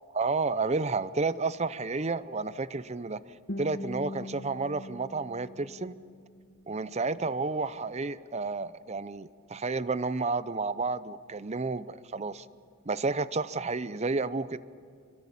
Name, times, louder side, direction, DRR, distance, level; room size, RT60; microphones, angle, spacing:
voice 1, 0.1-3.2 3.6-6.0 6.7-12.5 12.9-14.6, right 3 dB, 30° right, 15 dB, 0.6 m, -31 dB
Guitar, 3.5-6.5, left 1 dB, 55° left, 1.4 m, -41 dB
26.5 x 23.5 x 8.5 m, 2.3 s
head